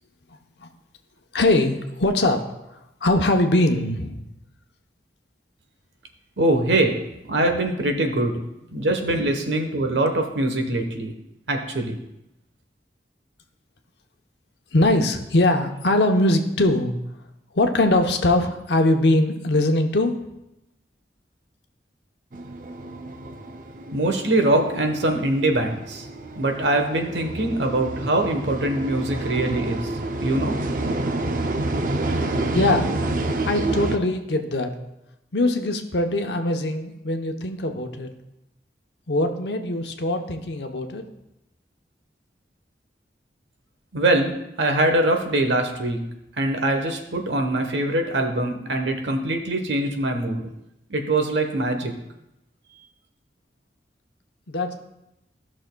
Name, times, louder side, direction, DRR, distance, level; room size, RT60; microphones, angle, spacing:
voice 1, 1.3-2.5 3.0-4.2 8.7-8.8 14.7-16.9 17.5-20.2 32.5-32.9 33.4-34.7 35.3-38.1 39.1-41.0 54.5-54.7, left 2 dB, 75° left, 5 dB, 0.8 m, -21 dB
voice 2, 6.4-6.9 7.3-8.4 8.7-11.1 11.5-12.0 23.9-26.0 26.4-29.9 30.2-30.6 43.9-46.0 46.4-50.5 50.9-51.9, right 1 dB, 90° right, 5 dB, 1.1 m, -23 dB
sound 1, 22.3-34.0, right 2 dB, 50° right, 0.5 m, -28 dB
14.5 x 6.2 x 2.2 m, 0.87 s
head